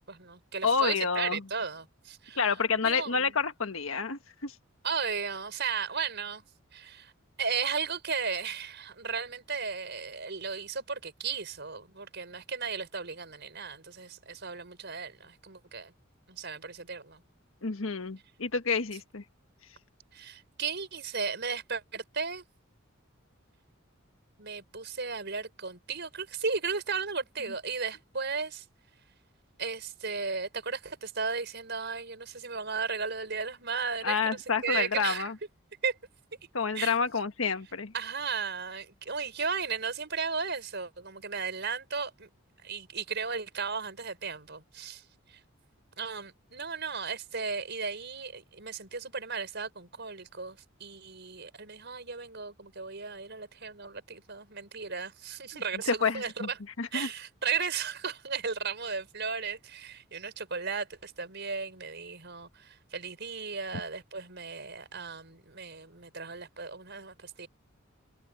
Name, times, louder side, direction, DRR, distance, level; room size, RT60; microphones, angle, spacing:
voice 1, 0.0-2.5 2.7-3.4 4.8-6.4 6.7-7.1 7.4-15.9 16.3-17.2 20.1-22.4 24.4-28.6 29.6-35.3 35.8-36.0 36.7-37.0 37.9-42.3 42.6-45.0 45.3-45.4 46.0-56.6 56.9-67.5, right 5 dB, 55° right, 5.4 m, -35 dB
voice 2, 0.6-1.4 2.4-4.5 17.6-19.2 34.0-35.4 36.5-37.9 55.5-56.5 56.8-57.1, left 5 dB, 85° left, 1.5 m, -29 dB
head